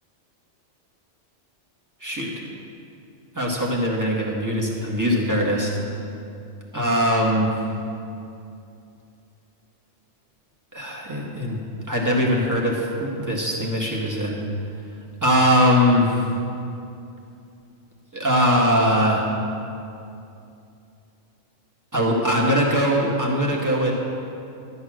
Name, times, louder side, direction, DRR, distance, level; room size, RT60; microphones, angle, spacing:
voice 1, 2.0-2.3 3.3-5.8 6.7-7.5 10.7-11.6 11.9-14.4 15.2-16.2 18.1-19.3 21.9-23.9, equal, 15° right, -2 dB, 1.6 m, -21 dB
12.0 x 8.3 x 6.3 m, 2.6 s
omnidirectional pair, 1.3 m